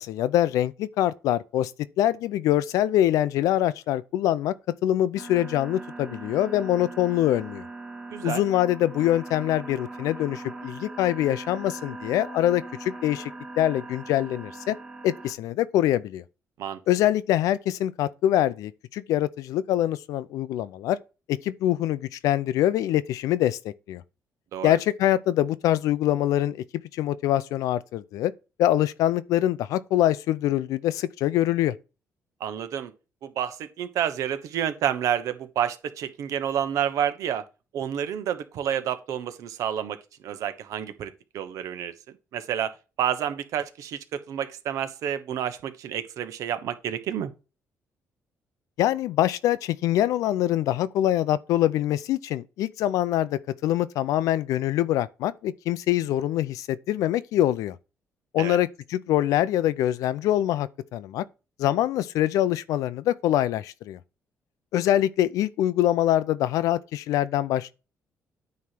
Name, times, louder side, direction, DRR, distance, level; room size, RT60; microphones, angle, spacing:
voice 1, 0.0-1.7 2.0-4.5 4.8-7.6 8.2-14.8 15.0-16.2 16.9-21.0 21.3-24.0 24.6-26.6 26.9-28.3 28.6-31.7 48.8-57.7 58.3-61.2 61.6-64.0 64.7-67.7, left 13 dB, 90° left, 0.5 m, -24 dB
sound 1, 5.2-15.3, right 2 dB, 15° right, 1.6 m, -40 dB
voice 2, 8.1-8.4 16.6-16.8 24.5-24.8 32.4-32.9 33.2-37.4 37.7-40.0 40.2-41.9 42.3-47.3 58.4-58.6, right 9 dB, 75° right, 1.1 m, -29 dB
9.4 x 3.2 x 5.9 m
cardioid pair, 115°, 6 cm